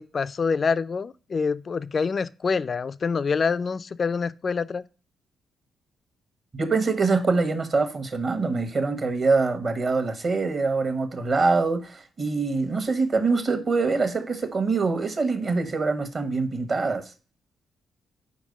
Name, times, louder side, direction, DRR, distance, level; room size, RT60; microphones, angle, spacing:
voice 1, 0.0-4.8, left 5 dB, 45° left, 0.4 m, -26 dB
voice 2, 6.5-17.1, right 4 dB, 45° right, 1.2 m, -24 dB
5.3 x 4.8 x 5.2 m
hypercardioid pair, 40°, 0 cm